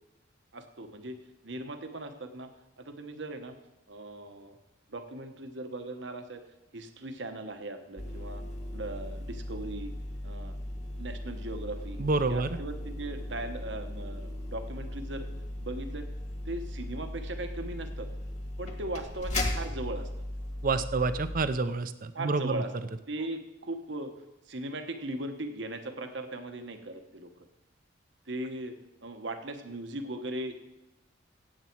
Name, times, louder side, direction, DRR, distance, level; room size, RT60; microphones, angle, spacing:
voice 1, 0.5-1.2 1.4-2.5 2.8-3.5 3.9-4.6 4.9-6.4 6.7-8.4 8.7-9.9 10.2-10.6 11.0-12.0 12.3-15.3 15.6-16.1 16.5-18.1 18.6-20.1 22.1-22.7 23.1-24.1 24.5-27.5 28.3-30.7, right 2 dB, 70° right, 7 dB, 1.2 m, -38 dB
sound 1, 8.0-21.5, left 1 dB, 40° left, 1.7 m, -37 dB
voice 2, 12.0-12.6 20.6-22.6, right 3 dB, 45° right, 12 dB, 0.6 m, -28 dB
16.5 x 8.3 x 4.6 m, 0.97 s
head